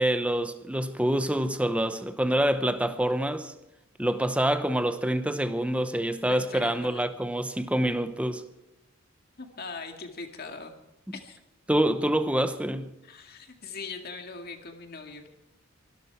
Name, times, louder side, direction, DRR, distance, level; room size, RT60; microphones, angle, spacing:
voice 1, 0.0-3.5 4.0-8.4 11.7-12.9, right 1 dB, 5° right, 0.9 m, -26 dB
voice 2, 6.3-7.0 9.4-10.7 11.1-11.4 13.0-15.3, left 4 dB, 50° left, 2.0 m, -40 dB
24.0 x 12.5 x 4.6 m
head